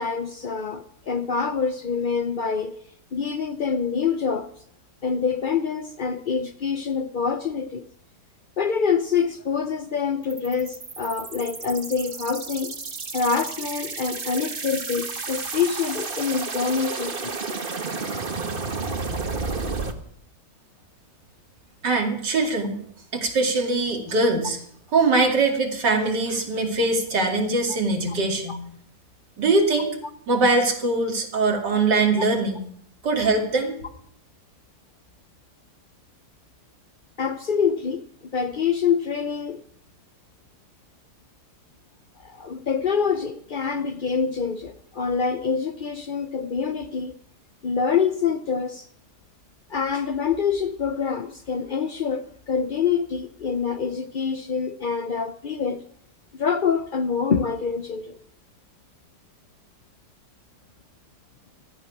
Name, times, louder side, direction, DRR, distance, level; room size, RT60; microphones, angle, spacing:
voice 1, 0.0-2.8 3.1-4.5 5.0-7.9 8.6-12.7 13.1-17.5 27.7-27.8 28.1-28.2 28.5-28.6 37.2-38.1 38.3-39.6 42.2-47.2 47.6-48.9 49.7-55.8 56.3-58.2, left 6 dB, 85° left, 0.4 m, -26 dB
sound 1, 10.2-19.9, right 4 dB, 35° right, 1.3 m, -32 dB
voice 2, 21.8-22.8 23.1-24.6 24.9-28.6 29.4-29.9 30.3-32.6 33.0-33.8, right 3 dB, 85° right, 3.0 m, -22 dB
15.5 x 13.0 x 5.9 m
omnidirectional pair, 1.8 m